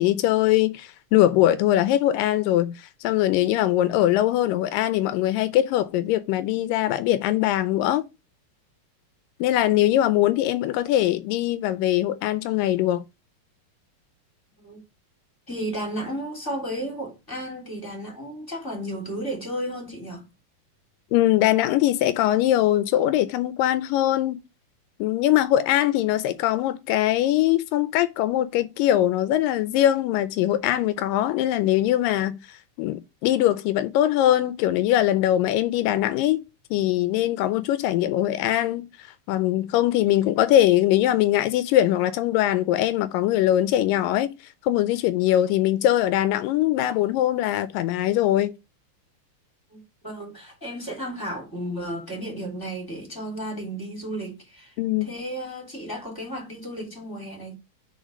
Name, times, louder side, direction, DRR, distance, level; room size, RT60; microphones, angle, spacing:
voice 1, 0.0-8.1 9.4-13.0 21.1-24.4 25.0-36.4 36.7-38.9 39.3-44.4 44.7-48.5 54.8-55.1, left 13 dB, 85° left, 2.2 m, -22 dB
voice 2, 15.5-20.2 49.7-54.7 55.0-57.5, right 1 dB, 5° left, 2.9 m, -33 dB
5.0 x 4.9 x 5.3 m
omnidirectional pair, 3.9 m